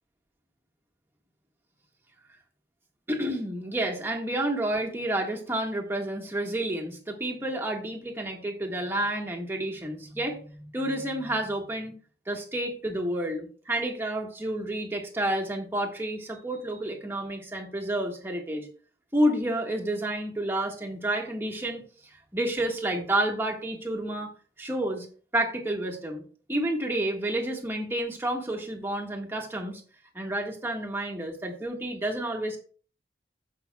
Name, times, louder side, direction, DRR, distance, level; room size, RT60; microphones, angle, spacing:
voice 1, 3.1-11.9 12.3-18.7 19.1-21.8 22.3-24.3 24.6-25.1 25.3-26.2 26.5-29.8 30.1-32.6, right 1 dB, 15° right, 0 dB, 1.5 m, -30 dB
16.0 x 5.7 x 2.3 m, 0.41 s
head